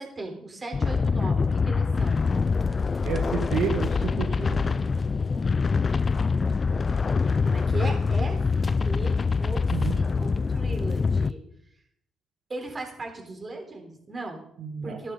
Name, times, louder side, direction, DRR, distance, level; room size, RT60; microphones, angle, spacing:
voice 1, 0.0-2.3 7.4-9.7 9.9-11.4 12.5-14.4 14.8-15.1, right 2 dB, 30° right, 2 dB, 3.7 m, -37 dB
sound 1, 0.7-11.3, left 4 dB, 35° left, 0.4 m, -24 dB
voice 2, 3.0-4.8 9.7-9.9 14.6-15.0, right 6 dB, 80° right, 2 dB, 1.6 m, -30 dB
14.0 x 12.0 x 3.9 m, 0.71 s
cardioid pair, 90°, 0 cm